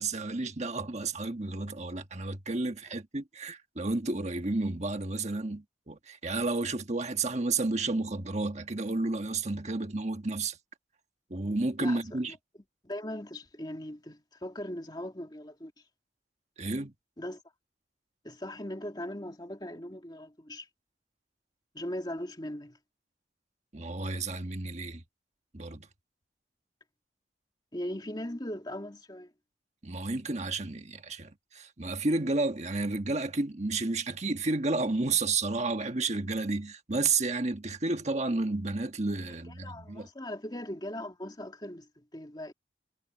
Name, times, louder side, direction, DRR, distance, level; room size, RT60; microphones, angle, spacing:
voice 1, 0.0-10.6 11.3-12.4 16.6-16.9 23.7-25.0 25.5-25.9 29.8-40.1, right 3 dB, 35° right, 1.4 m, -31 dB
voice 2, 12.8-15.7 17.2-17.4 18.2-20.7 21.7-22.8 27.7-29.3 39.6-42.5, left 1 dB, 20° left, 2.4 m, -39 dB
head